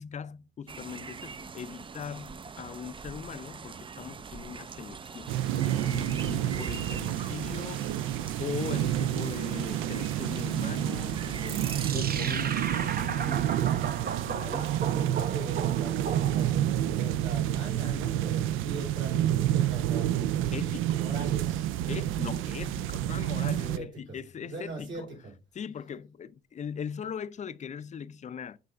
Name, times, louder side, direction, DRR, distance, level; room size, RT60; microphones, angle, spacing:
voice 1, 0.0-8.0 8.4-14.8 20.5-21.1 21.9-25.2 25.5-28.6, left 7 dB, 35° left, 0.4 m, -40 dB
sound 1, 0.7-11.9, right 5 dB, 25° right, 0.4 m, -42 dB
sound 2, 5.3-23.8, right 12 dB, 90° right, 0.4 m, -29 dB
voice 2, 6.3-6.7 14.8-20.7 21.0-21.9 23.6-24.2 24.4-25.3, right 2 dB, 70° right, 3.9 m, -41 dB
sound 3, 11.5-16.8, right 7 dB, 50° right, 0.7 m, -35 dB
7.7 x 3.3 x 3.7 m
cardioid pair, 90°, 20 cm